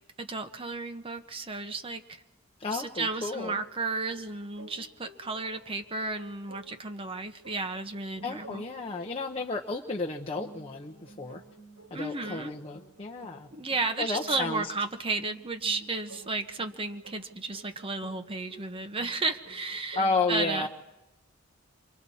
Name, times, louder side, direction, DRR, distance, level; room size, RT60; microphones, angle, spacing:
voice 1, 0.2-2.2 2.7-8.6 11.9-12.5 13.5-20.0 20.3-20.7, right 3 dB, 25° right, 6 dB, 1.0 m, -33 dB
voice 2, 2.6-3.6 8.2-11.4 11.9-13.5 14.0-14.7 19.9-20.7, left 3 dB, 30° left, 1 dB, 0.8 m, -32 dB
sound 1, 4.1-20.1, right 2 dB, 80° right, 4.3 m, -52 dB
28.0 x 24.0 x 4.2 m, 0.98 s
head